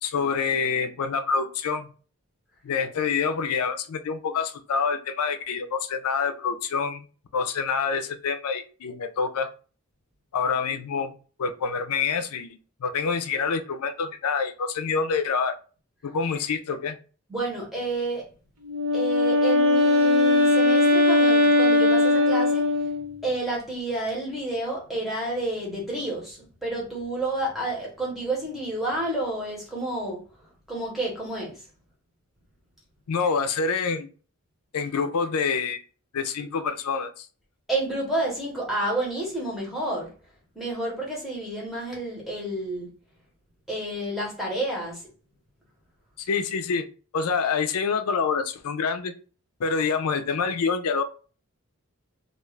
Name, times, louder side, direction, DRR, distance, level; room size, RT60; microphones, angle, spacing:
voice 1, 0.0-1.9 2.6-7.0 7.3-9.5 10.3-11.1 11.4-15.5 16.0-17.0 33.1-34.1 34.7-35.8 36.1-37.3 46.2-46.8 47.1-49.1 49.6-51.0, left 5 dB, 90° left, 0.4 m, -26 dB
voice 2, 17.3-18.3 18.9-22.7 23.2-30.2 30.7-31.6 37.7-40.1 40.5-42.9 43.7-45.1, right 2 dB, ahead, 0.9 m, -30 dB
Wind instrument woodwind instrument, 18.7-23.2, left 2 dB, 85° right, 1.0 m, -20 dB
2.4 x 2.3 x 3.1 m
head